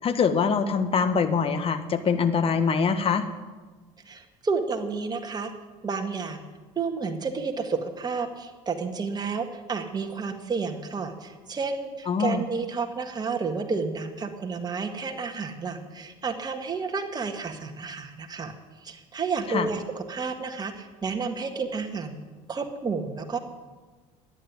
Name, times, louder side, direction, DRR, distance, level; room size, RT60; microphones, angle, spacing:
voice 1, 0.0-3.2 12.1-12.4 19.5-19.7, left 5 dB, 40° left, 10 dB, 1.5 m, -23 dB
voice 2, 4.1-5.5 5.8-6.4 6.8-18.5 18.8-22.2 22.5-23.4, right 4 dB, 25° right, 4 dB, 2.0 m, -31 dB
11.5 x 10.0 x 9.6 m, 1.3 s
supercardioid pair, 90°, 15 cm